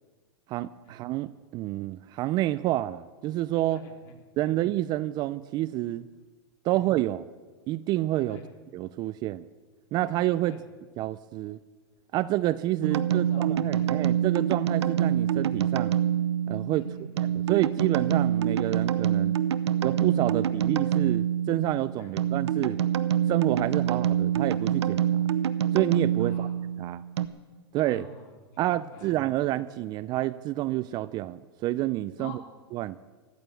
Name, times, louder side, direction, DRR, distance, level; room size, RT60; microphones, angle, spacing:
voice 1, 0.5-3.8 4.4-6.1 6.6-7.3 7.7-8.4 8.7-9.4 9.9-10.6 11.0-11.6 12.1-15.9 16.5-16.9 17.5-19.3 19.8-22.8 23.3-25.2 25.7-26.5 26.8-27.0 27.7-28.1 28.6-32.4 32.7-33.0, right 15 dB, 30° right, 15 dB, 0.4 m, -28 dB
voice 2, 3.7-4.1 4.4-4.5 6.7-6.8 8.3-8.4 10.4-10.6 12.9-13.5 13.7-13.9 16.8-17.2 22.0-22.1 26.2-26.5 27.9-29.1 32.2-32.4, left 2 dB, 45° left, 2 dB, 3.3 m, -45 dB
sound 1, 12.8-27.3, right 10 dB, 85° right, 0.8 m, -26 dB
14.0 x 8.9 x 8.1 m, 1.4 s
hypercardioid pair, 130°, 14 cm